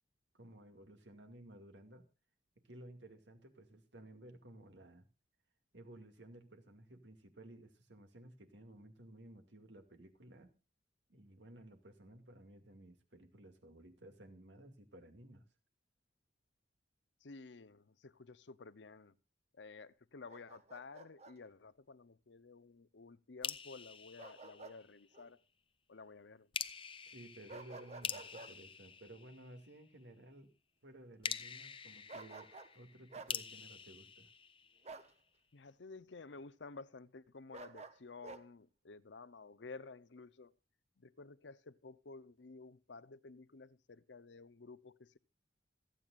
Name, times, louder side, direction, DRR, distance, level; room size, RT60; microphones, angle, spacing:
voice 1, 0.3-2.1 2.6-5.1 5.7-10.5 11.1-15.4 27.1-30.5 30.8-32.5 32.7-34.3, right 1 dB, 80° right, 2.3 m, -56 dB
voice 2, 17.2-19.1 19.5-25.4 25.9-26.5 35.5-40.5 41.0-45.2, left 4 dB, 75° left, 0.8 m, -53 dB
Bark, 20.3-21.4 24.2-24.8 25.1-25.3 27.5-28.5 32.1-32.8 33.1-33.3 34.8-35.1 37.5-38.4, right 3 dB, 35° right, 1.0 m, -51 dB
sound 1, 23.4-25.2 26.5-29.9 31.2-35.1, left 7 dB, 30° left, 0.7 m, -46 dB
27.0 x 9.1 x 2.5 m
head